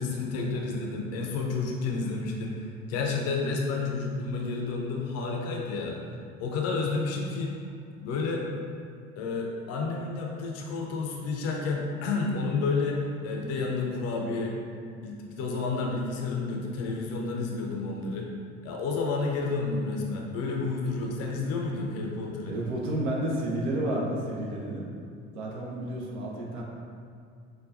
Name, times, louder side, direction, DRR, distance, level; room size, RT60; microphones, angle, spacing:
voice 1, 0.0-6.0 6.4-7.5 8.0-8.5 9.2-14.5 15.0-18.3 18.6-22.5, left 3 dB, 40° left, 0 dB, 0.6 m, -30 dB
voice 2, 22.4-24.9 25.3-26.6, right 1 dB, 65° right, -3 dB, 0.8 m, -31 dB
5.0 x 2.2 x 2.5 m, 2.3 s
figure-of-eight pair, 65°, 38 cm